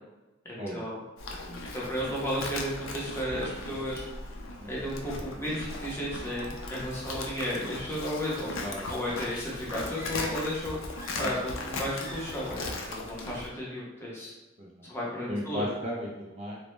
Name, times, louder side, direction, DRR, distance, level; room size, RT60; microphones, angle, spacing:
voice 1, 0.5-1.0 1.7-4.0 4.6-8.5 8.9-10.8 11.2-14.3 14.9-15.7, equal, 15° left, -6 dB, 0.6 m, -33 dB
Livestock farm animals working animals, 1.2-13.5, left 2 dB, 75° left, 0.4 m, -38 dB
voice 2, 1.4-1.9 4.6-4.9 8.6-8.8 11.2-11.3 14.6-14.9 15.3-16.6, equal, 35° right, -3 dB, 0.3 m, -36 dB
sound 1, 9.9-10.6 10.9-11.6 11.9-12.5, right 1 dB, 15° right, 0.8 m, -46 dB
2.1 x 2.0 x 3.0 m, 1.1 s
head